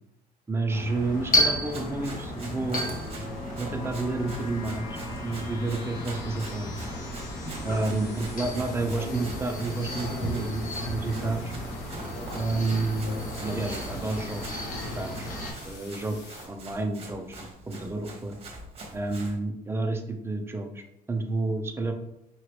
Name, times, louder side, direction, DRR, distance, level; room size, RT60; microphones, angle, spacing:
voice 1, 0.5-2.9 3.5-6.9 7.6-11.5 12.4-14.6 14.9-15.3 15.6-18.3 18.9-21.9, right 2 dB, 15° right, 4 dB, 0.6 m, -30 dB
sound 1, 0.7-15.5, equal, 55° left, 1.2 m, -33 dB
Run, 1.1-19.4, right 2 dB, 35° right, 1.3 m, -44 dB
sound 2, 2.4-16.5, left 3 dB, 80° left, 1.4 m, -46 dB
4.9 x 3.1 x 3.1 m, 0.83 s
cardioid pair, 110°, 17 cm